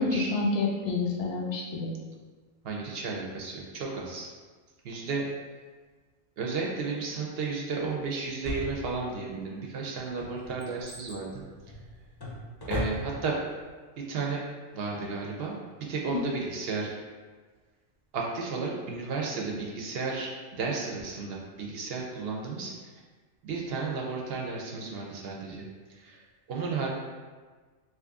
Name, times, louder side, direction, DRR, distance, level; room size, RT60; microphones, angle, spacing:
voice 1, 0.0-1.9 16.1-16.2, left 3 dB, 65° left, -1 dB, 0.7 m, -28 dB
voice 2, 2.6-4.3 4.8-5.3 6.4-11.4 12.7-13.4 14.0-14.4 14.7-16.9 18.1-22.7 23.4-25.6 25.9-26.2 26.5-26.9, right 4 dB, 65° right, -2 dB, 0.7 m, -33 dB
Drawer open or close, 8.4-9.3 9.9-13.4 13.7-13.8, equal, 30° left, 0.4 m, -37 dB
3.0 x 2.5 x 3.4 m, 1.4 s
omnidirectional pair, 1.2 m